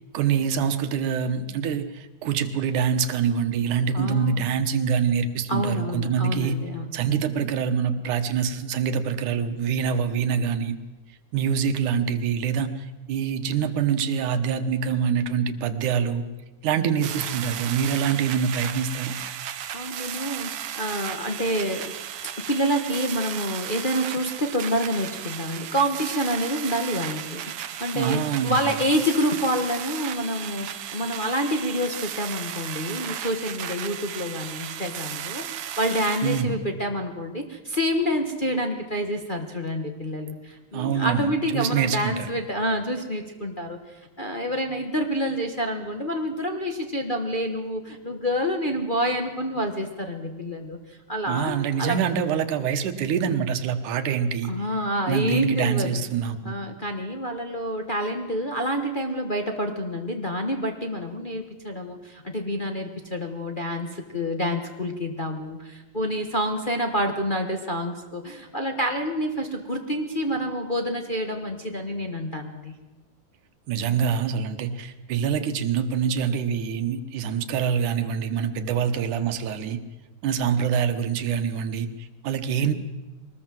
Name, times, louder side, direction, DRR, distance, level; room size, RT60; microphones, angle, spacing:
voice 1, 0.1-6.6 6.9-10.8 11.3-16.2 16.6-19.1 27.9-28.7 36.2-36.6 40.7-42.3 51.3-54.5 55.1-56.6 73.7-79.8 80.2-82.7, right 7 dB, 80° right, 9 dB, 2.7 m, -25 dB
voice 2, 3.9-4.4 5.5-7.0 19.7-21.9 22.2-52.0 52.5-52.7 54.5-56.0 56.4-72.8, equal, 40° left, 3 dB, 0.6 m, -28 dB
sound 1, 17.0-36.4, right 10 dB, 60° right, 1.7 m, -35 dB
22.5 x 19.5 x 7.7 m, 1.1 s
omnidirectional pair, 3.5 m